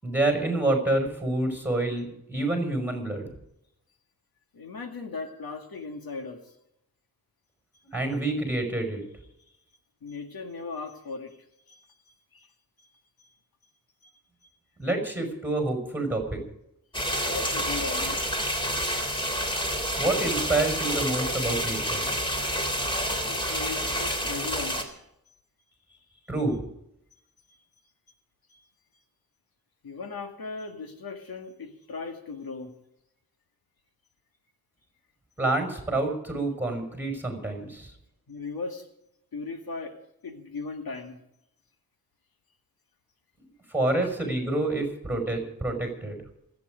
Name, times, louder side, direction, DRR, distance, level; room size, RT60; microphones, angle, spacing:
voice 1, 0.0-3.3 7.9-9.0 14.8-16.4 20.0-22.1 26.3-26.7 35.4-37.9 43.7-46.2, right 2 dB, 5° right, 3 dB, 5.7 m, -27 dB
voice 2, 4.5-6.5 7.7-7.8 10.0-11.4 11.7-12.0 12.3-12.5 12.8-12.9 13.2-13.4 14.0-14.1 17.2-18.3 18.6-19.4 23.2-25.0 27.5-27.6 28.5-28.7 29.8-32.7 38.3-38.9 39.3-40.0 40.2-41.2, left 4 dB, 75° left, 4 dB, 2.2 m, -38 dB
sound 1, 16.9-24.8, equal, 15° left, 3.4 m, -28 dB
27.5 x 9.5 x 5.1 m, 0.81 s
wide cardioid pair, 85°, 36 cm